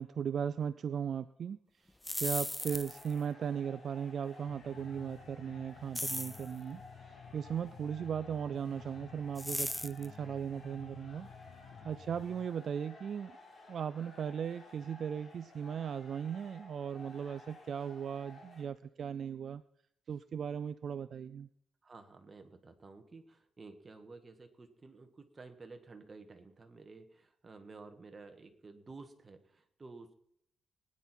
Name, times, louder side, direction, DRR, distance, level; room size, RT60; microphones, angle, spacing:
voice 1, 0.0-1.6 2.2-11.3 11.8-13.4 13.7-19.6 20.1-21.5, right 7 dB, 55° right, 13 dB, 0.4 m, -37 dB
sound 1, 1.9-3.1 5.9-6.5 9.4-10.1, left 1 dB, 5° left, 0.5 m, -37 dB
sound 2, 2.6-18.6, left 2 dB, 35° left, 3.1 m, -55 dB
sound 3, 4.5-12.5, left 7 dB, 60° left, 0.9 m, -54 dB
voice 2, 21.8-30.2, right 3 dB, 25° right, 6 dB, 1.6 m, -53 dB
20.0 x 9.9 x 4.5 m, 0.71 s
cardioid pair, 125°, 0 cm